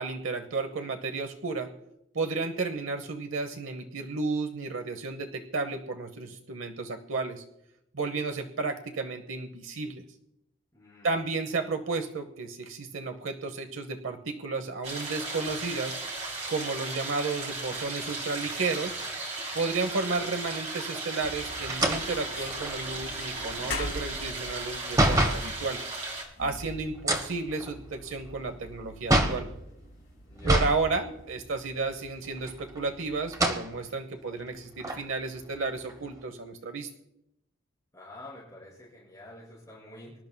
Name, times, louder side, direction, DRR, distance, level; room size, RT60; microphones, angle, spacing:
voice 1, 0.0-1.7 2.1-7.4 7.9-10.0 11.0-16.0 16.5-19.0 19.5-25.8 26.4-29.5 30.4-36.9, right 3 dB, 80° right, 7 dB, 0.9 m, -32 dB
voice 2, 10.7-11.2 30.2-30.6 37.9-40.2, left 1 dB, 15° left, -7 dB, 5.2 m, -48 dB
sound 1, 14.8-26.2, right 2 dB, 35° right, 3.4 m, -36 dB
sound 2, 21.2-33.4, left 2 dB, 80° left, 1.9 m, -44 dB
sound 3, 21.7-25.5 26.9-29.5 30.4-30.8 31.2-31.3 32.4-32.9 33.3-33.7 34.3-34.4 34.8-36.2, right 1 dB, 20° right, 1.2 m, -27 dB
24.5 x 12.0 x 2.2 m, 0.84 s
head